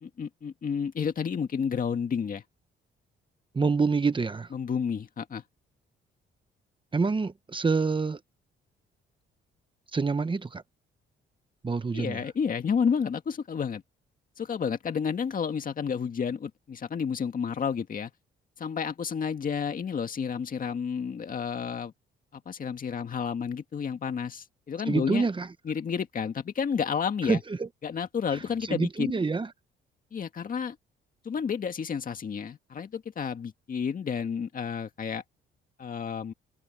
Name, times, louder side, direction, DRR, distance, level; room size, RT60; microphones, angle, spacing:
voice 1, 0.0-2.4 4.5-5.4 11.9-13.8 14.4-18.1 18.6-21.9 22.3-25.3 25.6-27.4 27.8-29.1 30.1-30.8 31.2-35.2 35.8-36.3, left 6 dB, 45° left, 1.9 m, -31 dB
voice 2, 3.5-4.5 6.9-8.2 9.9-10.6 11.6-12.2 24.9-25.5 27.3-27.7 28.3-28.4 28.7-29.5, right 4 dB, 25° right, 1.1 m, -27 dB
cardioid pair, 90°, 20 cm